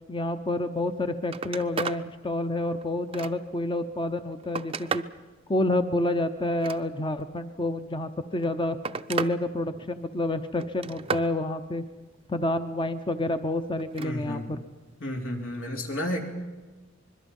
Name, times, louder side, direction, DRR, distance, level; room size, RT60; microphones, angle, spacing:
voice 1, 0.1-5.0 5.5-8.8 9.1-11.8 12.3-14.6, left 1 dB, 25° left, 9 dB, 0.8 m, -28 dB
Telephone, 0.8-0.9 1.2-2.0 2.5-3.6 4.2-5.2 6.4-7.2 8.2-9.4 9.7-10.2 10.6-11.3 13.8-14.1 15.5-15.7, right 5 dB, 30° right, 0.6 m, -34 dB
voice 2, 14.0-14.5 15.0-16.2, left 1 dB, 80° left, 1 dB, 3.3 m, -32 dB
25.5 x 21.5 x 5.4 m, 1.3 s
head